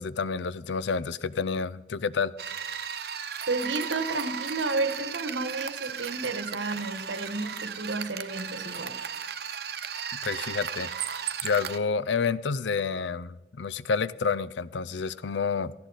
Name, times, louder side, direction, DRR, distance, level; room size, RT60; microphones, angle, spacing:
voice 1, 0.0-2.5 10.2-10.9 11.4-15.7, left 5 dB, 80° left, 0.5 m, -29 dB
sound 1, 2.4-11.8, right 7 dB, 60° right, 0.9 m, -35 dB
voice 2, 3.5-9.0, right 3 dB, 90° right, 1.4 m, -31 dB
17.5 x 15.0 x 4.1 m
head